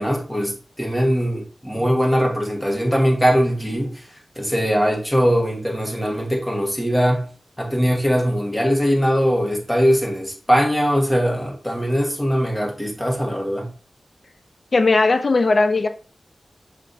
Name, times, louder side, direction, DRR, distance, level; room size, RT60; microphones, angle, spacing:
voice 1, 0.0-4.0 4.3-7.3 7.6-13.7, equal, 10° left, 1.5 m, -21 dB
voice 2, 14.7-15.9, left 3 dB, 60° left, 0.5 m, -17 dB
5.6 x 3.3 x 2.7 m
cardioid pair, 50°, 0 cm